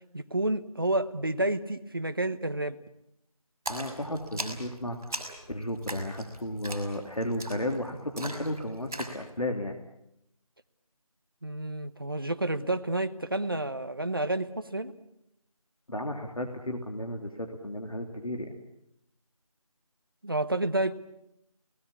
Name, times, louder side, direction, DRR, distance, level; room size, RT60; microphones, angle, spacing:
voice 1, 0.1-2.8 11.4-14.9 20.2-20.9, right 1 dB, 40° right, 11 dB, 1.1 m, -30 dB
voice 2, 3.7-9.8 15.9-18.5, left 1 dB, 70° left, 3 dB, 3.0 m, -34 dB
Splash splatter, 3.7-9.2, right 1 dB, 5° right, 1.6 m, -40 dB
27.0 x 19.0 x 8.6 m, 0.79 s
figure-of-eight pair, 175°, 19 cm